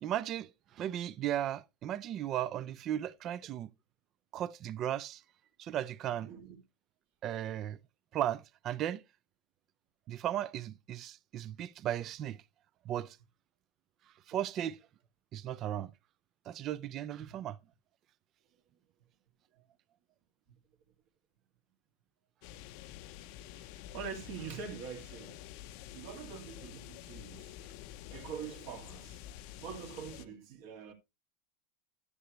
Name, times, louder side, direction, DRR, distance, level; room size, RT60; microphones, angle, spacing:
voice 1, 0.0-3.7 4.3-5.2 5.6-6.3 7.2-7.8 8.1-9.0 10.1-12.4 12.8-13.2 14.3-14.8 15.3-15.9 16.5-17.6, right 11 dB, 35° right, 0.4 m, -36 dB
voice 2, 6.2-6.6 17.2-17.4 23.6-23.7 23.9-25.4 25.9-27.6 28.1-29.2 29.6-30.9, right 7 dB, 60° right, 2.2 m, -44 dB
sound 1, 22.4-30.3, left 12 dB, 55° left, 0.6 m, -48 dB
11.0 x 6.7 x 3.1 m
supercardioid pair, 140°, 0 cm